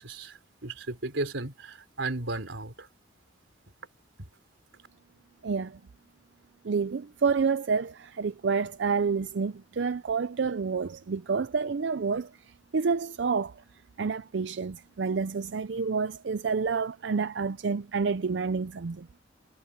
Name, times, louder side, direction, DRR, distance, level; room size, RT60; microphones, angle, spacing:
voice 1, 0.0-2.9, right 2 dB, 85° right, 3.6 m, -35 dB
voice 2, 5.4-5.8 6.6-13.6 14.0-19.1, right 5 dB, 65° right, 0.5 m, -29 dB
head